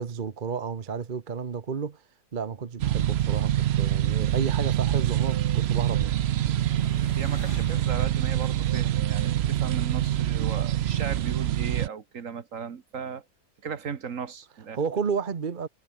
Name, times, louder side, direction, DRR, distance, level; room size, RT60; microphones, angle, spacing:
voice 1, 0.0-2.0 2.3-6.2 14.7-15.7, right 6 dB, 35° right, 1.0 m, -31 dB
sound 1, 2.8-11.9, right 12 dB, 80° right, 0.5 m, -25 dB
sound 2, 4.9-9.8, left 5 dB, 85° left, 3.0 m, -48 dB
voice 2, 7.2-13.2 13.6-14.8, right 6 dB, 55° right, 1.6 m, -36 dB
omnidirectional pair, 1.7 m